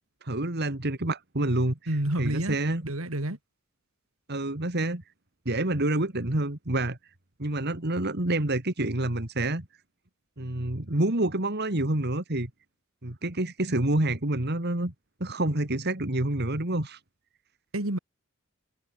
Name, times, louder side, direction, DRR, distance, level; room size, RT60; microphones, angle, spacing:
voice 1, 0.2-1.8 2.2-2.9 4.3-5.0 5.5-7.0 7.4-9.7 10.4-12.5 13.0-14.9 15.2-17.0, right 1 dB, 50° right, 2.5 m, -27 dB
voice 2, 1.9-2.6 2.9-3.4 17.7-18.0, right 1 dB, 80° right, 3.1 m, -29 dB
head